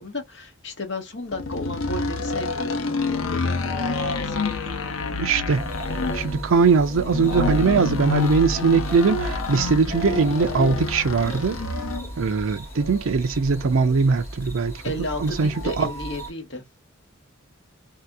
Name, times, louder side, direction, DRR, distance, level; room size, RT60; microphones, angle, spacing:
voice 1, 0.0-4.4 14.8-16.6, left 2 dB, 60° left, 1.1 m, -33 dB
sound 1, 1.3-12.1, left 3 dB, 90° left, 0.7 m, -27 dB
voice 2, 5.2-5.6 6.1-11.6 12.2-15.9, right 4 dB, 80° right, 0.5 m, -21 dB
sound 2, 5.5-16.3, right 1 dB, 10° left, 1.8 m, -35 dB
3.2 x 2.8 x 2.2 m
head